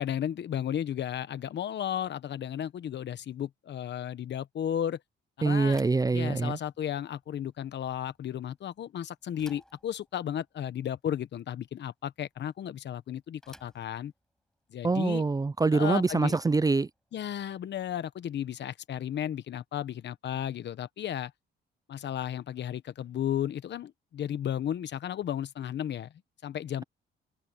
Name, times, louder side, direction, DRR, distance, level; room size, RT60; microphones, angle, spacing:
voice 1, 0.0-5.0 5.4-5.8 6.1-14.1 14.7-15.2 15.7-16.3 17.1-21.3 21.9-26.1 26.4-26.8, left 10 dB, 60° left, 1.2 m, -34 dB
voice 2, 5.4-6.6 14.8-16.9, right 3 dB, 20° right, 0.5 m, -25 dB
Bicycle / Thump thud, 5.7-18.7, equal, 5° left, 6.9 m, -60 dB
cardioid pair, 90°, 20 cm